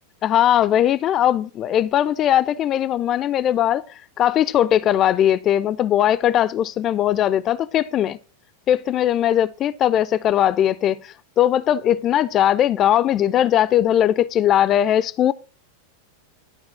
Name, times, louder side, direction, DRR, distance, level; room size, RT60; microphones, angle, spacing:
voice 1, 0.2-3.8 4.2-8.2 8.7-15.3, left 11 dB, 30° left, 0.4 m, -19 dB
11.5 x 4.7 x 5.9 m
figure-of-eight pair, 90°, 0 cm